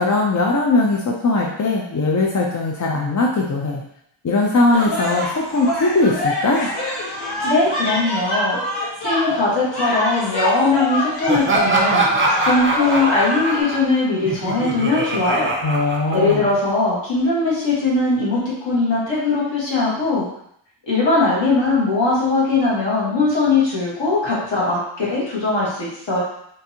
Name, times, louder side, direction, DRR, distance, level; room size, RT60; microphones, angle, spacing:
voice 1, 0.0-3.8 4.2-6.7 15.6-16.4, left 2 dB, 40° left, -1 dB, 0.4 m, -19 dB
sound 1, 4.7-13.6, left 1 dB, 80° left, 1.3 m, -25 dB
voice 2, 7.4-8.6 9.0-15.5 16.1-20.3 20.9-26.2, left 3 dB, 60° left, -6 dB, 1.5 m, -20 dB
Laughter, 11.3-16.7, right 3 dB, 25° right, 0.6 m, -23 dB
3.8 x 2.5 x 2.8 m, 0.72 s
wide cardioid pair, 100°, 49 cm